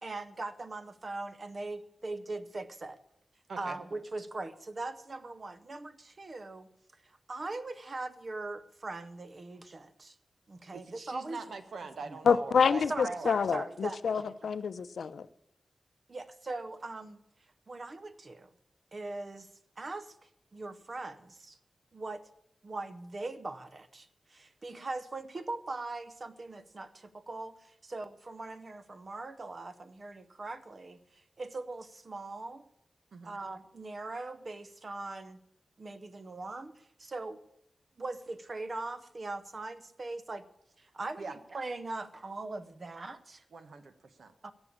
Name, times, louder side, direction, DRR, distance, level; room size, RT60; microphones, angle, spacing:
voice 1, 0.0-3.0 3.6-6.7 7.3-10.2 10.5-11.4 12.1-12.4 12.9-14.0 16.1-17.2 17.7-18.5 18.9-19.5 19.8-20.2 20.5-21.6 21.9-22.2 22.6-32.6 33.2-35.4 35.8-37.4 38.0-40.4 40.8-43.4 44.4-44.5, right 2 dB, 35° right, 12 dB, 0.8 m, -40 dB
voice 2, 10.7-13.3 33.1-33.3 41.2-41.3 43.5-44.3, right 4 dB, 75° right, 9 dB, 1.3 m, -43 dB
voice 3, 12.3-15.3, left 6 dB, 90° left, 14 dB, 0.6 m, -27 dB
16.5 x 7.1 x 8.6 m, 0.77 s
wide cardioid pair, 155°, 0 cm